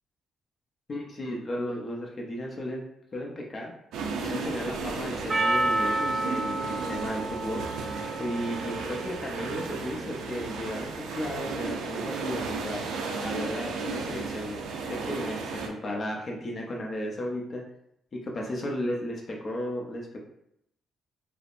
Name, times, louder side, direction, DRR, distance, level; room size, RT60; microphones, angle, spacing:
voice 1, 0.9-2.8 3.1-3.7 4.2-7.6 8.2-12.8 13.2-14.6 14.9-17.6 18.1-20.2, left 1 dB, 40° left, 0 dB, 0.7 m, -34 dB
sound 1, 3.9-15.7, right 4 dB, 85° right, 0.4 m, -34 dB
Percussion, 5.3-9.6, right 2 dB, 35° right, 0.6 m, -30 dB
3.3 x 2.0 x 2.5 m, 0.79 s
cardioid pair, 90°, 0 cm